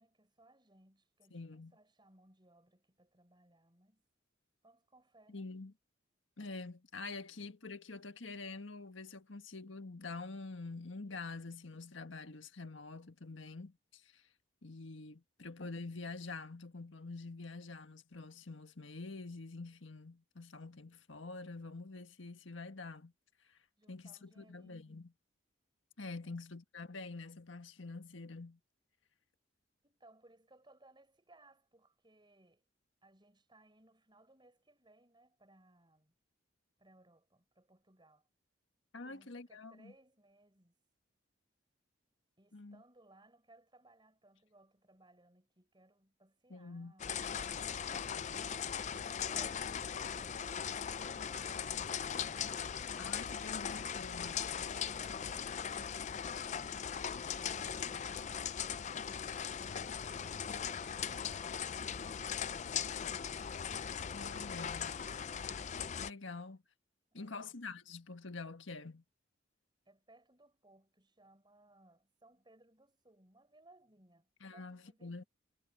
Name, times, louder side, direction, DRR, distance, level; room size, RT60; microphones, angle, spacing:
voice 1, 0.0-4.0 4.6-5.5 7.3-7.4 20.9-21.0 23.8-25.1 26.2-26.4 29.8-32.6 33.0-36.2 36.8-38.3 39.0-40.8 42.4-50.9 57.3-58.9 67.1-67.6 69.9-75.3, right 1 dB, 25° right, 5.9 m, -65 dB
voice 2, 1.3-1.7 5.3-5.7 6.4-14.3 14.6-23.1 23.4-23.6 23.9-25.1 26.0-28.6 38.9-39.9 42.5-42.8 46.5-46.9 53.0-54.4 64.1-64.9 66.0-66.6 67.1-69.0 74.4-75.2, left 3 dB, 80° left, 1.6 m, -46 dB
sound 1, 47.0-66.1, left 7 dB, 40° left, 0.4 m, -39 dB
head